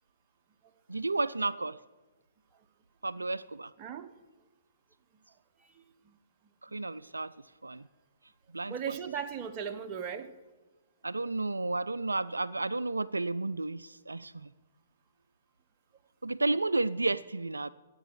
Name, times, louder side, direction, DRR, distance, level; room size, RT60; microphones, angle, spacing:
voice 1, 0.9-1.8 3.0-3.7 6.6-7.3 7.6-7.9 8.5-8.9 11.0-14.5 16.2-17.7, right 2 dB, 85° right, 15 dB, 0.4 m, -32 dB
voice 2, 3.8-4.1 5.6-6.2 8.7-10.3, right 7 dB, 30° right, 5 dB, 1.1 m, -38 dB
13.5 x 8.9 x 8.1 m, 1.3 s
figure-of-eight pair, 125°, 0 cm